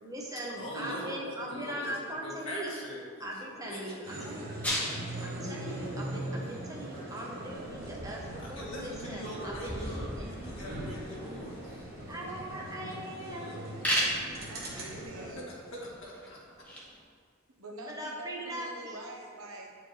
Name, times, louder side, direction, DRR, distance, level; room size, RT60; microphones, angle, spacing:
voice 1, 0.0-2.7 3.2-4.6 5.2-10.4 12.1-13.8 14.9-15.0 17.9-19.0, right 1 dB, 15° right, -2 dB, 0.8 m, -40 dB
voice 2, 0.5-1.1 1.5-1.9 2.2-3.3 3.6-4.3 8.4-11.9 13.1-13.6 15.3-15.4 15.7-16.4, left 1 dB, 70° left, -6 dB, 1.8 m, -42 dB
sound 1, 4.0-15.3, right 1 dB, 45° right, 1.2 m, -41 dB
sound 2, 4.6-17.0, equal, 5° left, 1.0 m, -39 dB
voice 3, 14.5-15.5 17.6-19.7, right 1 dB, 85° right, 0 dB, 1.0 m, -45 dB
9.3 x 4.6 x 3.2 m, 2.1 s
head